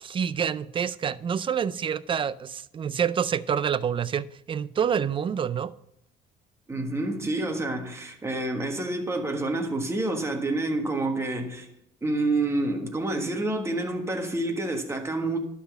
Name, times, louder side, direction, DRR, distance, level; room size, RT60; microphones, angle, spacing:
voice 1, 0.0-5.7, right 8 dB, 30° right, 0.4 m, -27 dB
voice 2, 6.7-11.7 12.0-15.4, right 2 dB, 15° right, 1.4 m, -28 dB
11.5 x 4.1 x 7.0 m
cardioid pair, 110°, 17 cm